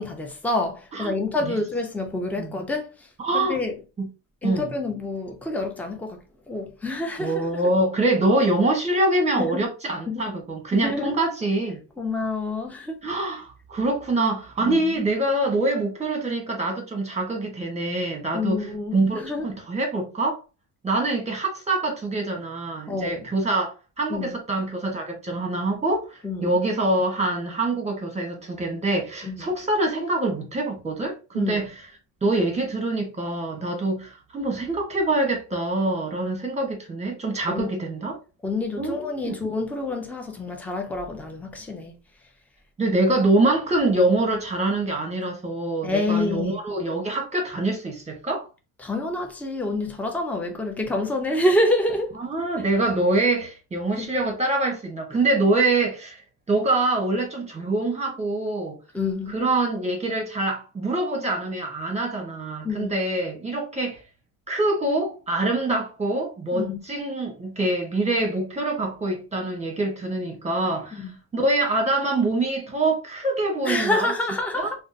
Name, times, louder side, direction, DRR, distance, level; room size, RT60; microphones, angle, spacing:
voice 1, 0.0-2.9 3.3-3.8 4.4-6.2 6.5-7.5 9.4-9.6 10.1-10.2 10.7-11.2 12.0-13.0 14.2-14.3 14.6-14.9 18.3-19.4 22.9-23.2 24.1-24.3 26.2-26.6 29.2-29.4 31.3-31.6 37.5-37.7 38.4-41.9 45.8-46.6 48.8-52.2 54.0-54.1 58.9-59.4 62.6-63.0 66.5-66.8 71.0-71.1 73.6-74.8, left 2 dB, 5° left, 0.6 m, -27 dB
voice 2, 0.9-1.6 2.4-2.5 3.2-3.6 4.0-4.1 4.4-4.7 7.2-11.8 13.0-20.4 20.8-31.9 32.2-38.2 38.8-39.1 42.8-48.5 52.2-56.2 56.5-58.8 59.3-64.0 64.5-71.1 71.3-74.1 74.5-74.7, right 2 dB, 15° right, 1.2 m, -25 dB
3.6 x 2.2 x 2.6 m
cardioid pair, 100°, 41 cm